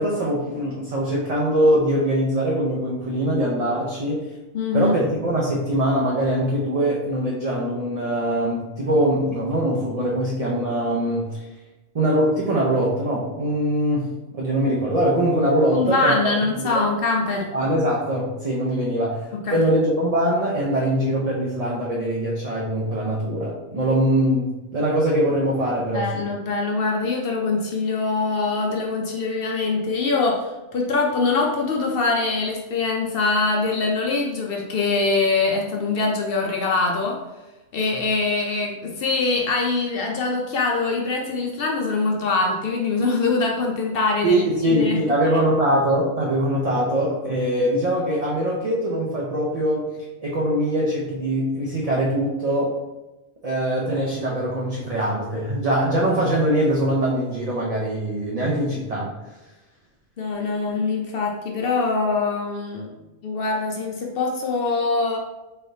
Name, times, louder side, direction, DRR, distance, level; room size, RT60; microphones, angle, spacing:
voice 1, 0.0-4.2 4.7-11.4 11.9-16.8 17.4-26.2 44.2-49.9 50.2-52.8 53.4-59.1, right 1 dB, 45° right, -5 dB, 0.5 m, -22 dB
voice 2, 4.5-5.0 15.7-17.5 19.3-19.6 25.9-37.2 37.7-45.0 45.3-45.4 60.2-62.9 63.2-65.2, left 3 dB, 60° left, 0 dB, 0.6 m, -23 dB
3.8 x 3.3 x 2.6 m, 1.1 s
omnidirectional pair, 1.3 m